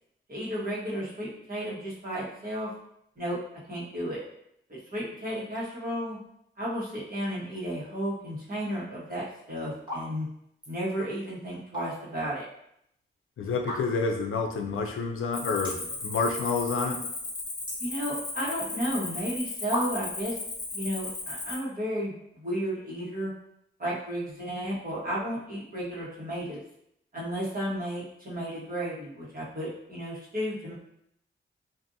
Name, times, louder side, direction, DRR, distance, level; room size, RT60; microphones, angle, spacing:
voice 1, 0.3-2.7 3.2-3.4 3.7-4.2 4.7-6.2 6.6-10.3 10.7-12.5 17.8-20.4 20.7-23.3 23.8-26.6 27.1-30.7, equal, 45° right, -7 dB, 1.3 m, -33 dB
sound 1, 9.0-9.3 9.8-10.1 10.4-10.7 11.5-12.2 12.6-12.7 13.5-14.1 14.7-14.8 14.9-15.0 15.6-16.0 16.3-16.8 17.1-18.5 19.2-19.3 19.7-20.2, equal, 20° right, 1.5 m, -35 dB
voice 2, 13.4-17.0, left 4 dB, 80° left, 3 dB, 0.4 m, -29 dB
Cricket, 15.3-21.5, left 3 dB, 50° left, 0.8 m, -36 dB
2.5 x 2.5 x 2.6 m, 0.73 s
cardioid pair, 55°, 21 cm